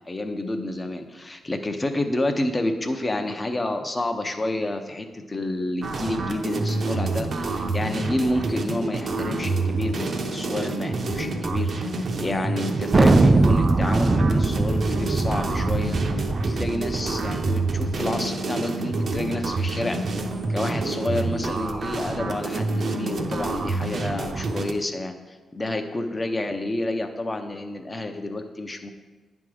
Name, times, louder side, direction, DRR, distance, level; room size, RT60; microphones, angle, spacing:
voice 1, 0.1-16.0 16.4-20.2 20.5-28.9, left 1 dB, 20° left, 6 dB, 0.7 m, -29 dB
sound 1, 5.8-24.7, right 3 dB, 55° right, 0.7 m, -28 dB
Thunder, 12.9-18.1, right 2 dB, 25° right, 0.4 m, -21 dB
9.7 x 3.6 x 6.3 m, 1.3 s
cardioid pair, 115°, 0 cm